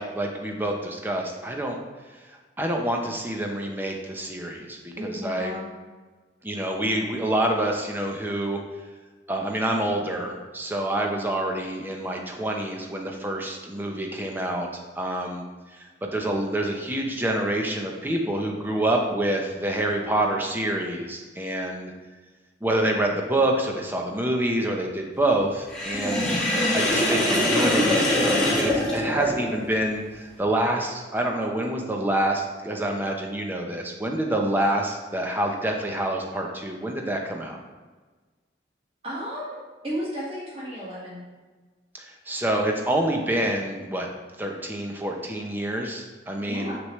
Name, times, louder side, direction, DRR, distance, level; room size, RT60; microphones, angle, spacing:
voice 1, 0.0-1.8 2.6-5.6 6.4-8.6 9.3-14.7 15.0-15.4 15.7-21.9 22.6-37.6 41.9-44.1 44.4-46.8, right 1 dB, 10° right, 1 dB, 0.7 m, -27 dB
voice 2, 5.0-5.6 39.0-39.6 39.8-41.2 46.5-46.8, equal, 30° right, -7 dB, 1.6 m, -33 dB
Sink (filling or washing), 25.7-29.7, left 1 dB, 5° left, 1.2 m, -23 dB
6.3 x 6.2 x 3.2 m, 1.3 s
head